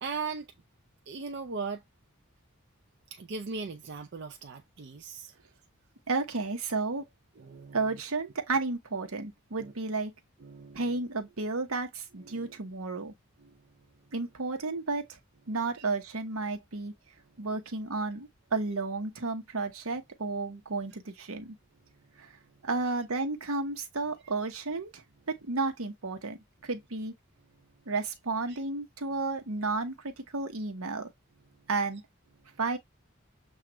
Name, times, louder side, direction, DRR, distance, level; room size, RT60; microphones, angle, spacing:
voice 1, 0.0-0.5 1.1-1.8 3.1-5.3 7.4-7.8 9.5-9.7 10.4-11.0 12.2-12.6 13.4-13.6 15.8-15.9 28.5-28.6, right 4 dB, 55° right, 0.5 m, -39 dB
voice 2, 6.1-7.0 7.7-10.1 10.7-13.1 14.1-15.2 15.5-16.9 17.4-21.6 22.2-22.3 22.6-27.1 27.9-31.1 31.7-32.0 32.6-32.8, right 3 dB, 80° right, 1.0 m, -32 dB
7.2 x 2.4 x 3.0 m
head